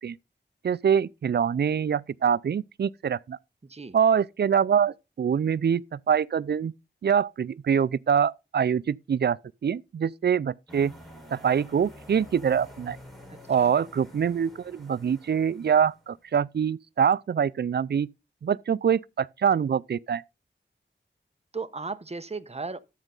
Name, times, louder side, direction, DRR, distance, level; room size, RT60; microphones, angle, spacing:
voice 1, 0.6-3.4 3.9-6.7 7.0-9.4 9.6-10.9 11.3-13.0 13.5-18.1 18.4-20.2, right 7 dB, 65° right, 0.4 m, -24 dB
voice 2, 3.6-4.0 13.3-13.7 21.5-22.8, right 4 dB, 35° right, 0.8 m, -36 dB
sound 1, 10.7-16.2, left 1 dB, ahead, 4.3 m, -49 dB
13.0 x 5.4 x 3.9 m
wide cardioid pair, 75°, 19 cm